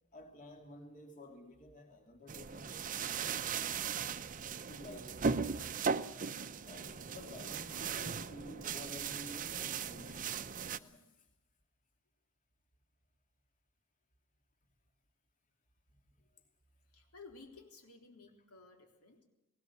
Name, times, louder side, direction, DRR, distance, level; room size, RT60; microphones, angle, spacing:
voice 1, 0.1-2.9 4.7-5.8 6.6-11.2, left 1 dB, 35° left, 2.7 m, -52 dB
sound 1, 2.3-10.8, right 5 dB, 35° right, 0.7 m, -38 dB
voice 2, 16.9-19.2, left 3 dB, 85° left, 3.8 m, -56 dB
19.0 x 19.0 x 8.3 m
head